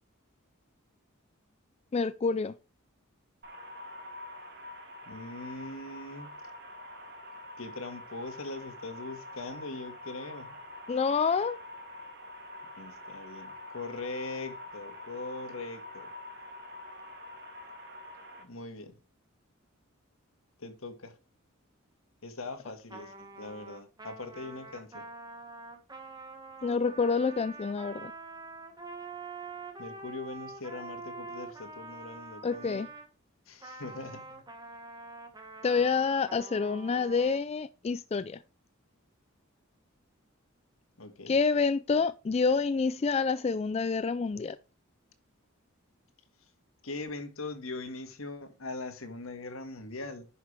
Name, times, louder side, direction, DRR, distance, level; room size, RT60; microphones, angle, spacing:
voice 1, 1.9-2.5 10.9-11.6 26.6-28.1 32.4-32.9 35.6-38.4 41.3-44.6, left 5 dB, 30° left, 0.3 m, -28 dB
sound 1, 3.4-18.4, left 2 dB, 55° right, 2.5 m, -46 dB
voice 2, 5.1-6.3 7.6-10.6 12.8-16.1 18.4-19.0 20.6-21.1 22.2-25.0 29.8-32.9 33.5-34.4 41.0-41.3 46.8-50.3, left 3 dB, 75° left, 1.7 m, -41 dB
Trumpet, 22.9-33.1 33.6-37.4, right 3 dB, 20° right, 1.4 m, -45 dB
10.5 x 5.7 x 3.3 m
head